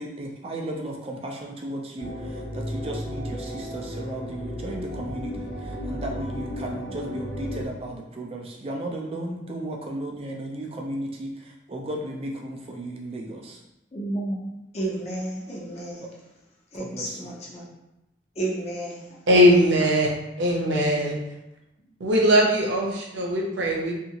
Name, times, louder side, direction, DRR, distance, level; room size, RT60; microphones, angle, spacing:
voice 1, 0.0-13.6 16.0-16.1 16.7-17.3, right 1 dB, 30° right, 0 dB, 0.4 m, -35 dB
sound 1, 2.0-7.7, equal, 85° left, 0.7 m, -34 dB
voice 2, 13.9-16.0 16.7-17.6 18.4-19.2, right 1 dB, 35° left, -3 dB, 0.6 m, -32 dB
voice 3, 19.3-20.1 20.4-21.2 22.0-23.9, equal, 85° right, -2 dB, 0.7 m, -20 dB
2.7 x 2.5 x 2.8 m, 0.89 s
head